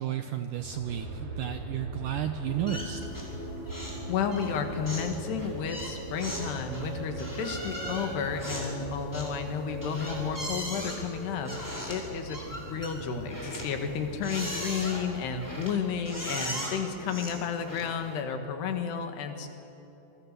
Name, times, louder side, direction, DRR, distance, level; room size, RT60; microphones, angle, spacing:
voice 1, 0.0-3.0, right 11 dB, 80° right, 8 dB, 1.9 m, -32 dB
Aircraft, 0.6-16.8, right 1 dB, 50° right, 3.4 m, -43 dB
sound 1, 2.4-11.6, equal, 50° left, 1.3 m, -43 dB
sound 2, 2.7-3.4 3.7-4.0 4.3-18.1, equal, 5° left, 4.5 m, -39 dB
voice 2, 4.1-19.5, left 6 dB, 80° left, 6 dB, 3.8 m, -32 dB
27.5 x 23.5 x 6.8 m, 2.9 s
omnidirectional pair, 4.7 m